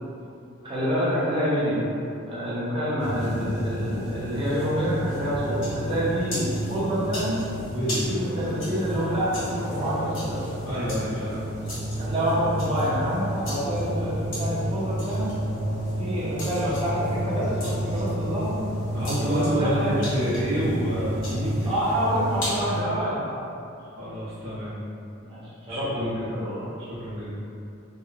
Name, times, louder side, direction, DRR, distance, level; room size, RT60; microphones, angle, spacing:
voice 1, 0.6-1.9 2.3-7.4 8.1-10.4 12.0-15.4 16.0-18.6 19.2-19.9 21.7-23.5 25.2-26.7, equal, 25° right, -9 dB, 0.6 m, -27 dB
sound 1, 3.0-22.8, right 1 dB, 85° left, 1.2 m, -30 dB
voice 2, 7.7-8.1 9.9-10.1 10.6-11.4 18.9-21.7 23.8-24.7 25.7-26.3 26.8-27.3, equal, 90° right, -14 dB, 0.8 m, -29 dB
2.9 x 2.1 x 2.3 m, 2.5 s
head